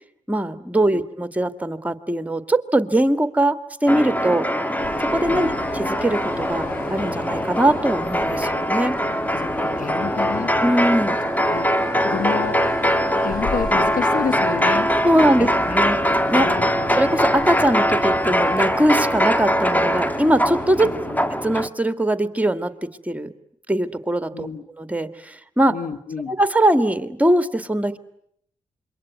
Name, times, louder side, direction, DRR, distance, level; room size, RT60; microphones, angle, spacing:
voice 1, 0.3-4.5 5.1-5.5 5.7-8.9 10.6-11.2 15.0-16.5 17.0-23.3 23.7-24.5 24.8-25.8 26.3-28.0, right 1 dB, 10° right, 11 dB, 2.1 m, -21 dB
sound 1, 3.9-21.7, equal, 10° left, 1.7 m, -22 dB
sound 2, 4.8-21.0, left 6 dB, 85° left, 3.4 m, -39 dB
voice 2, 9.4-10.5 11.5-11.7 12.0-12.6 13.2-14.9 15.4-15.9 16.3-16.7 20.8-21.2 24.3-24.6 25.7-26.4, left 6 dB, 65° left, 12 dB, 1.9 m, -30 dB
26.5 x 23.0 x 9.5 m, 0.73 s
supercardioid pair, 50°, 15 cm